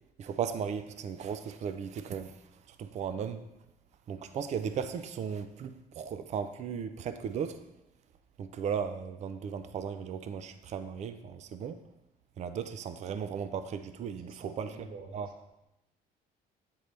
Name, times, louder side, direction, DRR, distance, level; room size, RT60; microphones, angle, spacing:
voice 1, 0.2-2.4 2.7-3.4 4.1-7.6 8.4-11.8 12.4-14.9 15.1-15.3, right 7 dB, 45° right, 10 dB, 0.4 m, -36 dB
voice 2, 14.2-15.3, right 3 dB, 60° right, 2 dB, 1.3 m, -49 dB
8.8 x 3.9 x 3.3 m, 0.90 s
cardioid pair, 110°, 17 cm